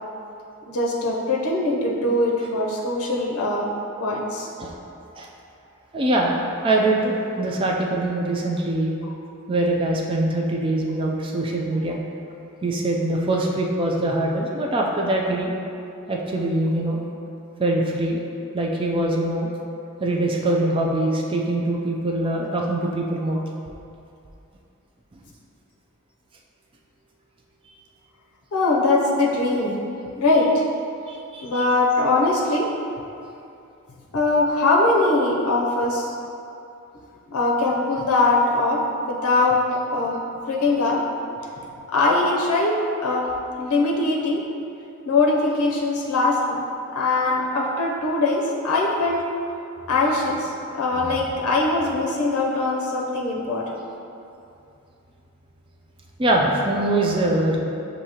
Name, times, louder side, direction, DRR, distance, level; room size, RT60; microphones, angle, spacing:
voice 1, 0.7-3.7 4.0-4.5 28.5-29.7 30.2-30.6 31.4-32.7 34.1-36.1 37.3-38.8 39.1-39.6 39.9-40.2 40.5-41.0 41.9-42.7 43.0-43.3 43.6-44.4 45.1-46.6 46.9-49.2 49.9-53.7, left 2 dB, 85° left, -2 dB, 0.5 m, -21 dB
voice 2, 5.9-8.9 9.5-12.0 12.6-15.5 16.1-17.0 17.6-18.2 18.5-19.5 20.0-23.4 31.1-31.6 50.9-51.1 56.2-57.6, right 1 dB, 25° right, -1 dB, 0.3 m, -23 dB
6.2 x 2.7 x 2.8 m, 2.7 s
head